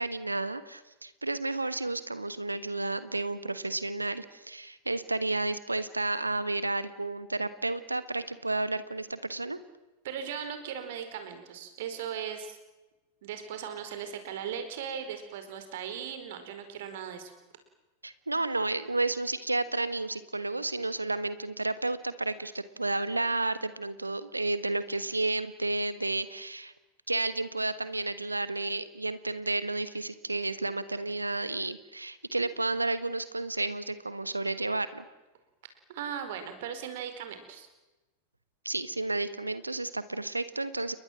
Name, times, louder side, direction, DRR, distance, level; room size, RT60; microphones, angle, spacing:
voice 1, 0.0-9.6 18.0-26.7 27.1-35.0 38.6-40.9, right 2 dB, 85° right, 14 dB, 1.3 m, -31 dB
voice 2, 10.0-12.6 13.2-17.3 35.9-37.7, right 8 dB, 55° right, 9 dB, 4.6 m, -38 dB
30.0 x 22.0 x 7.4 m, 1.1 s
figure-of-eight pair, 90°, 0 cm